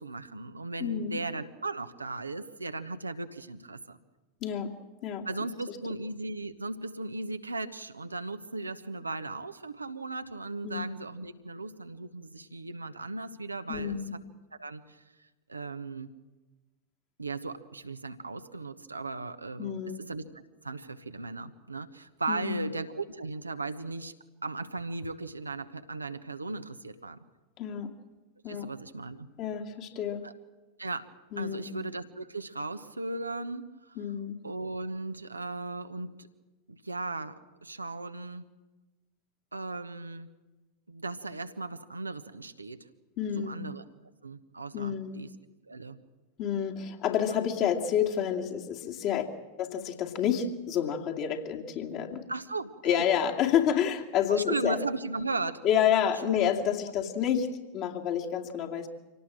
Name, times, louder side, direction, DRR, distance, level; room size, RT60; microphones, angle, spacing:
voice 1, 0.0-4.0 5.2-14.0 14.6-15.0 15.5-16.1 17.2-19.7 20.1-24.1 24.4-27.2 28.5-29.3 30.2-30.3 30.8-31.1 31.4-34.0 34.4-36.1 36.7-38.4 39.5-40.3 40.9-42.8 43.3-43.8 44.2-45.3 45.7-46.0 52.3-53.0 54.3-55.6 56.2-56.5, right 3 dB, 80° right, 9 dB, 1.1 m, -37 dB
voice 2, 0.8-1.2 4.4-4.8 5.0-5.3 5.7-5.8 10.6-10.8 13.7-14.1 19.6-20.0 22.3-22.7 27.6-27.9 28.4-28.7 29.4-30.3 31.3-31.7 34.0-34.4 43.2-43.6 44.7-45.2 46.4-49.3 49.6-52.3 52.8-54.8 55.6-58.9, left 9 dB, 40° left, 1 dB, 2.5 m, -29 dB
25.5 x 18.0 x 7.6 m, 1.2 s
figure-of-eight pair, 90°, 0 cm